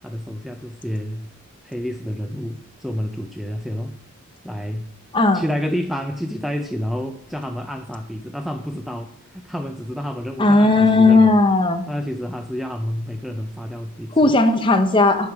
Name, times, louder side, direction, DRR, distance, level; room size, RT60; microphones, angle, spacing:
voice 1, 0.0-1.3 1.6-4.0 4.4-4.9 5.3-11.4 11.9-14.3, equal, ahead, 5 dB, 0.4 m, -29 dB
voice 2, 5.1-5.4 10.4-11.8 14.1-15.3, left 2 dB, 20° left, 7 dB, 0.8 m, -16 dB
10.5 x 7.2 x 4.8 m, 0.69 s
head